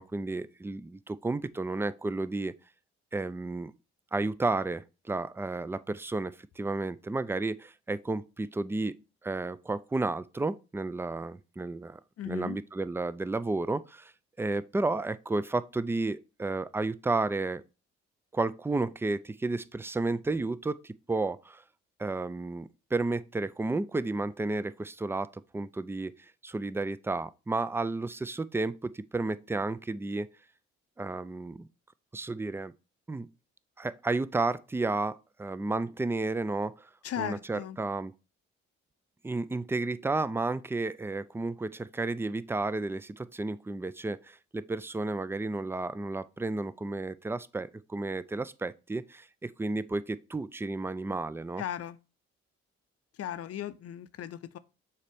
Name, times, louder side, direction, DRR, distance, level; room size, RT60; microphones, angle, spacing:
voice 1, 0.0-2.5 3.1-3.7 4.1-12.0 12.2-14.1 14.4-17.6 18.3-21.6 22.0-30.3 31.0-31.7 32.1-32.7 33.1-33.3 33.8-36.9 37.2-38.1 39.2-51.6, right 3 dB, 10° right, 0.4 m, -32 dB
voice 2, 12.2-12.6 37.0-37.8 51.6-52.0 53.2-54.6, left 10 dB, 55° left, 0.6 m, -37 dB
6.5 x 4.3 x 3.5 m
supercardioid pair, 60°, 29 cm